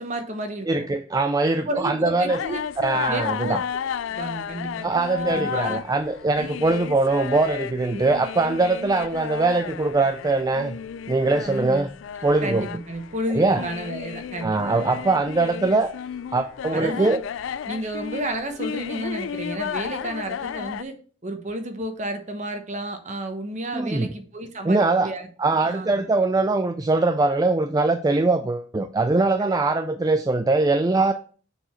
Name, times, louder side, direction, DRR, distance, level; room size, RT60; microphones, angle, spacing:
voice 1, 0.0-0.8 1.7-2.6 3.1-3.6 4.1-5.8 11.5-11.9 12.4-15.0 16.7-17.1 17.7-21.0 21.2-25.3 25.6-26.0, right 1 dB, 40° right, 1.1 m, -31 dB
voice 2, 0.7-2.4 2.8-3.6 4.8-10.8 11.1-11.9 12.2-12.7 13.3-13.6 14.4-15.9 16.3-17.2 23.7-24.1 24.6-25.1 25.4-31.1, right 3 dB, 20° right, 0.4 m, -22 dB
sound 1, 2.3-20.8, left 8 dB, 85° left, 0.3 m, -33 dB
6.4 x 4.8 x 4.4 m
head